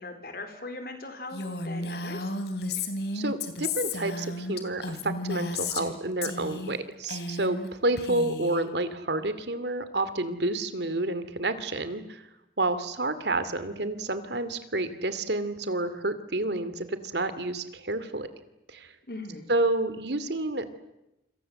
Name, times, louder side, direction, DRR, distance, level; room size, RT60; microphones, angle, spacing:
voice 1, 0.0-2.3 19.1-19.5, left 2 dB, 55° left, 7 dB, 4.3 m, -39 dB
Female speech woman speaking, 1.3-5.9 6.2-6.8 7.0-7.7 8.0-8.6, left 3 dB, 70° left, 3.3 m, -33 dB
voice 2, 3.1-12.2 12.6-18.3 18.7-18.9 19.5-20.7, right 2 dB, 75° right, 12 dB, 2.5 m, -29 dB
28.0 x 26.5 x 7.8 m, 0.90 s
head